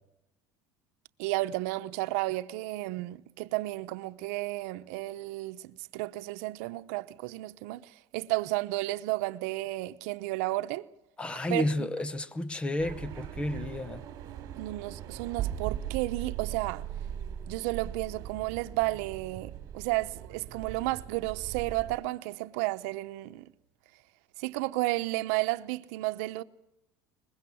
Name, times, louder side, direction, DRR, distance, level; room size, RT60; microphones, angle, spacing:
voice 1, 1.2-10.9 11.5-11.9 14.6-16.8 17.5-23.5 24.4-26.4, right 19 dB, 80° right, 0.9 m, -32 dB
voice 2, 11.2-14.0, left 1 dB, 15° left, 0.9 m, -31 dB
sound 1, 12.8-22.0, right 11 dB, 45° right, 3.1 m, -39 dB
22.5 x 21.0 x 7.1 m
cardioid pair, 155°, 8 cm